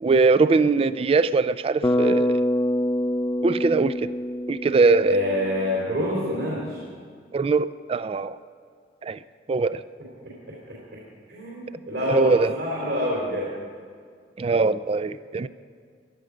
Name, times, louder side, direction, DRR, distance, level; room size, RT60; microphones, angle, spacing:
voice 1, 0.0-2.4 3.4-4.1 4.5-5.2 7.3-8.4 9.0-9.2 9.5-9.8 12.1-12.5 14.4-15.5, right 4 dB, 30° right, 15 dB, 0.3 m, -21 dB
Bass guitar, 1.8-5.9, left 1 dB, 20° left, 0.5 m, -25 dB
voice 2, 5.0-6.8 10.2-10.8 11.3-13.5, equal, 70° right, -5 dB, 3.5 m, -27 dB
17.0 x 12.0 x 5.1 m, 2.1 s
head